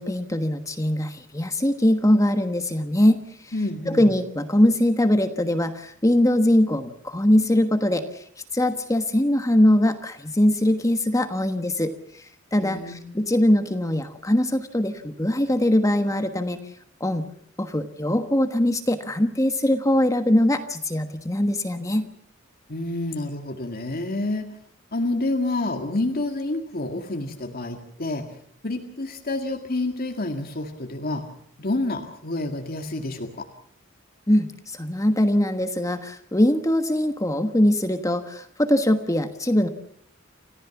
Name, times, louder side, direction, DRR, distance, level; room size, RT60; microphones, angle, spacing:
voice 1, 0.0-3.5 3.9-8.2 8.5-16.6 17.0-17.2 17.6-22.1 34.3-39.7, left 1 dB, 15° left, 8 dB, 1.3 m, -22 dB
voice 2, 3.5-4.1 12.6-13.3 22.7-24.6 24.9-28.3 28.6-31.3 31.6-33.5, left 2 dB, 50° left, 3 dB, 2.0 m, -28 dB
29.0 x 14.5 x 7.2 m, 0.65 s
head